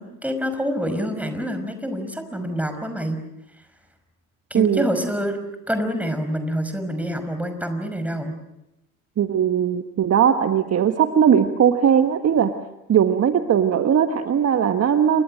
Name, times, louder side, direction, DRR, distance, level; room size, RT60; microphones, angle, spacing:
voice 1, 0.0-3.2 4.5-5.4 5.7-8.4, equal, 5° right, 8 dB, 5.5 m, -26 dB
voice 2, 4.5-4.9 9.2-12.5 12.9-15.2, right 8 dB, 35° right, 8 dB, 1.5 m, -19 dB
28.5 x 23.5 x 6.4 m, 0.89 s
figure-of-eight pair, 60°, 43 cm